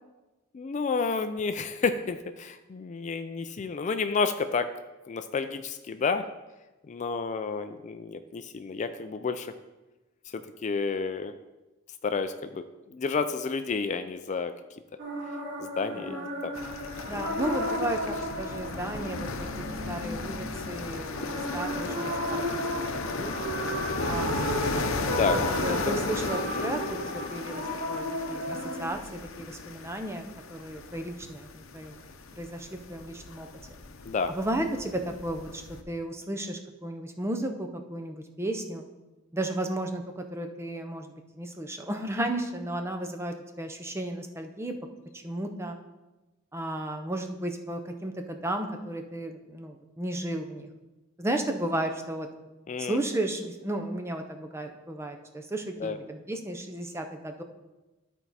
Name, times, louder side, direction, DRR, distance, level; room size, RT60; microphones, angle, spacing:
voice 1, 0.5-4.7 5.1-6.2 6.9-9.5 10.3-11.3 12.0-12.6 12.9-14.5 15.6-16.5 17.3-17.5 18.0-18.1 25.1-25.4 25.9-26.0 26.7-26.8 34.1-34.3 52.7-53.0 55.8-56.0, left 4 dB, 35° left, 9 dB, 0.3 m, -30 dB
sound 1, 15.0-28.9, equal, 55° right, 1.4 m, -34 dB
voice 2, 15.9-16.3 17.1-22.6 22.9-23.4 24.0-24.4 25.3-32.0 32.4-33.5 34.4-38.8 39.3-44.7 45.1-45.8 46.5-50.7 51.2-52.3 52.8-57.4, right 1 dB, 15° right, 5 dB, 0.6 m, -34 dB
sound 2, 16.5-35.8, left 3 dB, 80° left, 0.7 m, -35 dB
12.5 x 4.5 x 4.1 m, 1.1 s
head